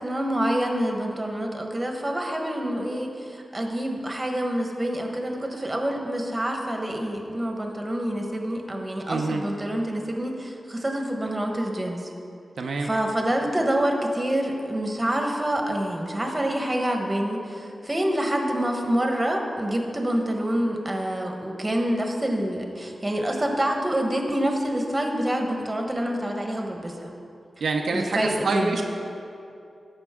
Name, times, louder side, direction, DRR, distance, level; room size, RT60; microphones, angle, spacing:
voice 1, 0.0-12.1 12.8-27.1 27.9-28.7, right 1 dB, 20° right, 2 dB, 1.2 m, -27 dB
voice 2, 9.1-9.4 12.6-12.9 27.6-28.8, right 3 dB, 85° right, 2 dB, 0.5 m, -26 dB
13.0 x 5.3 x 3.6 m, 2.6 s
cardioid pair, 65°, 0 cm